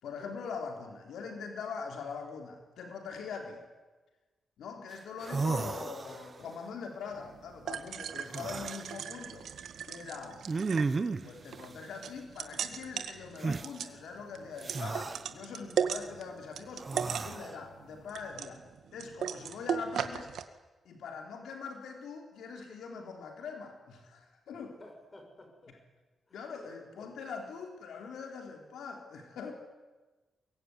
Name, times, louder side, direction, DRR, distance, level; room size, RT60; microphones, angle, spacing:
voice 1, 0.0-3.6 4.6-9.5 9.8-10.4 11.2-18.6 18.9-20.3 20.9-24.8 26.3-29.5, left 5 dB, 90° left, 3 dB, 4.0 m, -42 dB
sound 1, 4.9-5.0 5.2-6.5 8.3-8.9 10.5-11.3 13.4-13.7 14.6-15.2 16.8-17.6, right 4 dB, 30° right, 1.0 m, -33 dB
sound 2, 7.1-20.4, right 8 dB, 80° right, 1.9 m, -38 dB
voice 2, 24.5-25.8 26.3-26.7 27.0-27.1, left 2 dB, 25° left, 4 dB, 7.3 m, -54 dB
23.5 x 22.0 x 9.8 m, 1.2 s
wide cardioid pair, 130°, 0 cm